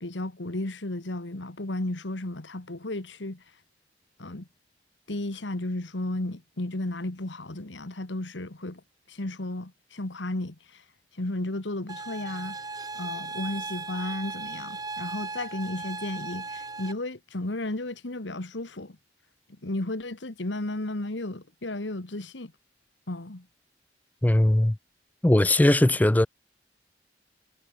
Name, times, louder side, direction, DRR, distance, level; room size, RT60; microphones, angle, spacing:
voice 1, 0.0-3.4 4.2-4.5 5.1-8.8 9.1-10.8 11.2-12.6 12.9-19.0 19.6-22.5 23.1-23.5 25.9-26.0, left 1 dB, 90° left, 1.8 m, -34 dB
sound 1, 11.9-16.9, right 3 dB, 20° right, 2.2 m, -37 dB
voice 2, 24.2-24.8 25.2-26.3, left 1 dB, 10° left, 0.3 m, -19 dB
head